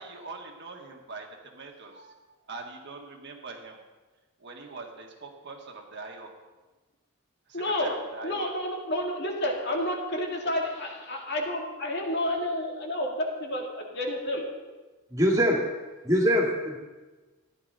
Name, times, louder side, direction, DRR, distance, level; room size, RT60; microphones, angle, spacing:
voice 1, 0.0-3.8 4.4-6.3 7.5-8.5, right 3 dB, 50° right, 2 dB, 1.6 m, -43 dB
voice 2, 7.5-7.9 8.2-14.4, left 1 dB, 50° left, 0 dB, 2.1 m, -30 dB
voice 3, 15.1-15.6 16.0-16.8, equal, 15° right, -2 dB, 2.3 m, -23 dB
14.5 x 10.5 x 4.0 m, 1.2 s
head